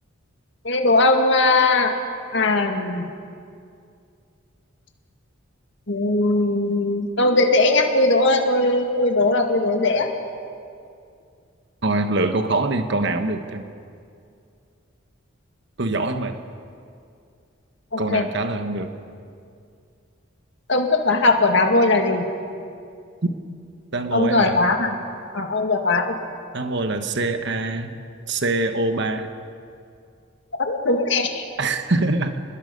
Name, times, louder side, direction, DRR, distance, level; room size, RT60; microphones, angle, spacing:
voice 1, 0.6-2.0 2.3-3.1 5.9-10.1 17.9-18.2 20.7-22.3 24.1-25.0 25.3-26.1 30.6-31.4, left 2 dB, 60° left, 4 dB, 2.1 m, -19 dB
voice 2, 11.8-13.7 15.8-16.4 18.0-18.9 23.9-24.6 26.5-28.0 28.3-29.3 31.6-32.4, right 2 dB, 60° right, 8 dB, 1.2 m, -24 dB
28.5 x 21.0 x 5.3 m, 2.4 s
head